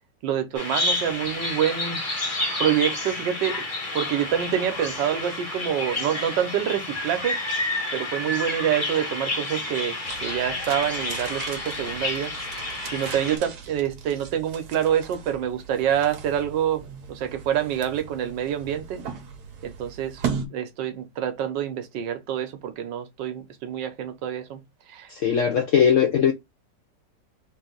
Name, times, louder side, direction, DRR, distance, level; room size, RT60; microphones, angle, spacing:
voice 1, 0.2-2.0 2.6-3.6 3.9-7.4 7.9-12.3 12.9-19.0 19.6-20.2 20.5-24.6 24.9-25.1, right 9 dB, 80° right, 1.5 m, -26 dB
Bird vocalization bird call bird song, 0.5-13.4, left 2 dB, 30° left, 1.3 m, -30 dB
sound 1, 10.0-20.5, right 6 dB, 65° right, 1.4 m, -37 dB
voice 2, 25.1-26.3, left 8 dB, 75° left, 0.7 m, -19 dB
3.7 x 2.7 x 3.7 m
omnidirectional pair, 1.9 m